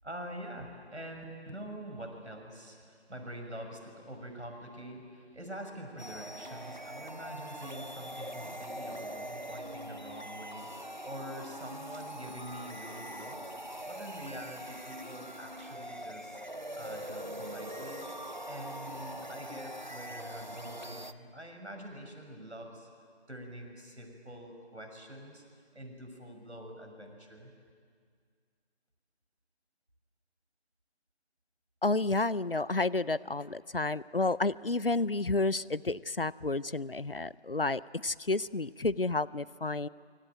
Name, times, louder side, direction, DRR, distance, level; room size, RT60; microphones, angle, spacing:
voice 1, 0.0-13.5 13.8-16.4 16.7-18.1 18.5-22.9 23.3-25.4 25.7-27.5, equal, 80° right, 3 dB, 6.3 m, -45 dB
sound 1, 6.0-21.1, equal, 45° right, 0.8 m, -43 dB
voice 2, 31.8-39.9, left 3 dB, 55° left, 20 dB, 0.6 m, -30 dB
25.0 x 24.5 x 9.1 m, 2.1 s
figure-of-eight pair, 175°, 33 cm